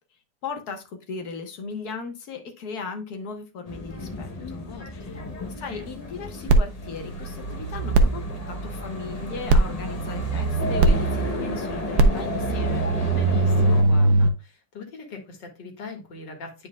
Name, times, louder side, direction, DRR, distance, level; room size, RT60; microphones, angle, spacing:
voice 1, 0.4-5.2 5.6-12.8, left 4 dB, 65° left, 1.7 m, -37 dB
sound 1, 3.6-13.8, left 2 dB, 35° left, 0.6 m, -33 dB
voice 2, 4.7-5.4 13.1-16.7, left 3 dB, 90° left, 2.3 m, -41 dB
sound 2, 6.5-14.3, right 2 dB, 70° right, 1.2 m, -22 dB
9.5 x 5.1 x 2.2 m
omnidirectional pair, 1.9 m